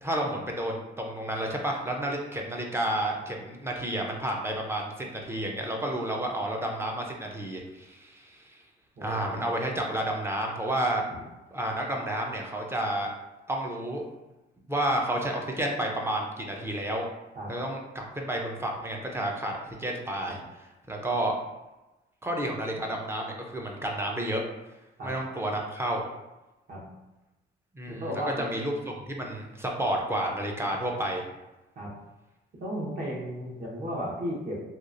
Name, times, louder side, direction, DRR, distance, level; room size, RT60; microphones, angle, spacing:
voice 1, 0.0-8.6 9.0-11.0 11.5-13.1 13.5-14.0 14.7-17.1 17.5-20.4 20.9-21.3 22.2-24.4 25.0-26.0 27.7-31.2, right 1 dB, 10° right, 0 dB, 0.5 m, -31 dB
voice 2, 9.0-9.3 17.4-17.5 20.3-20.4 25.0-25.1 26.7-26.9 27.9-28.5 31.8-31.9 32.6-34.6, equal, 50° right, -3 dB, 0.9 m, -34 dB
2.9 x 2.3 x 2.5 m, 1.0 s
cardioid pair, 90°, 20 cm